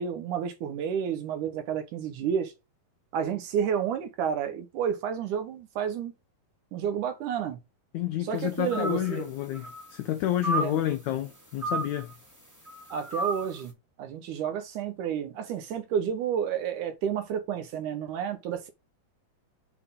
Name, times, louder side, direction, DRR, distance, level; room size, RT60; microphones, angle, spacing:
voice 1, 0.0-2.5 3.1-6.1 6.7-7.6 8.2-9.3 10.6-10.8 12.9-13.7 14.0-18.7, right 8 dB, 70° right, 2.1 m, -30 dB
voice 2, 7.9-12.1, left 12 dB, 80° left, 1.6 m, -29 dB
sound 1, 8.7-9.2 9.5-10.0 10.4-10.8 11.6-12.1 12.7-13.5, right 2 dB, 15° right, 0.6 m, -32 dB
7.8 x 4.1 x 3.8 m
omnidirectional pair, 4.2 m